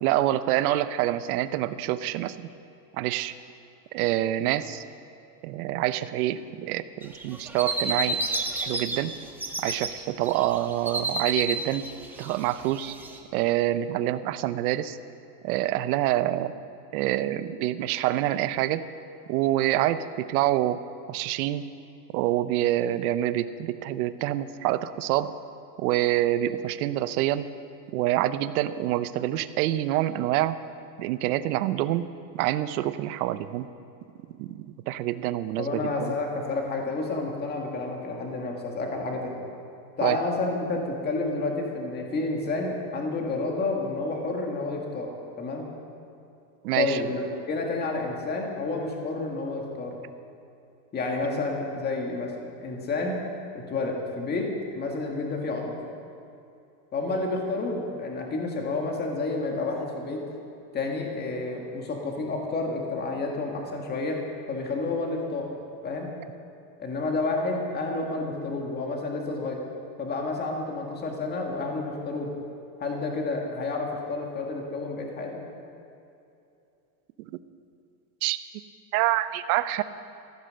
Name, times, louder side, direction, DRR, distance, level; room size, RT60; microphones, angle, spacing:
voice 1, 0.0-2.5 2.9-3.3 3.9-4.8 5.4-8.2 8.6-9.1 9.6-11.8 12.2-13.0 13.3-15.0 15.4-16.5 16.9-18.9 19.3-20.8 21.1-21.6 22.1-25.3 25.8-27.5 27.9-30.6 31.0-32.1 32.3-33.7 34.4-36.1 40.0-40.2 46.6-47.0 77.2-77.3 78.2-78.4 78.9-79.8, right 14 dB, 65° right, 13 dB, 0.7 m, -26 dB
sound 1, 7.0-9.0 9.3-9.9 10.2-13.2, right 2 dB, 5° right, 0.6 m, -30 dB
voice 2, 35.6-39.4 40.0-45.7 46.7-50.0 50.9-52.3 52.6-53.2 53.5-55.7 56.9-60.2 60.7-64.2 64.5-65.5 65.8-66.1 66.8-69.6 70.0-72.3 72.8-75.4, left 3 dB, 20° left, 1 dB, 1.8 m, -30 dB
14.0 x 11.0 x 6.5 m, 2.7 s
supercardioid pair, 155°, 49 cm